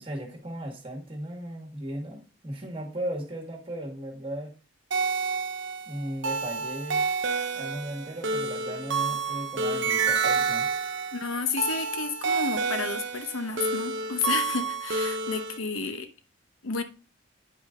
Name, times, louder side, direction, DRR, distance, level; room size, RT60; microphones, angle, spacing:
voice 1, 0.0-4.5 5.9-7.0 7.5-10.7, right 1 dB, 25° right, 1.7 m, -36 dB
sound 1, 4.9-15.6, right 4 dB, 60° right, 0.8 m, -29 dB
voice 2, 11.1-16.1 16.6-16.8, left 4 dB, 90° left, 0.9 m, -31 dB
9.0 x 5.3 x 3.8 m
head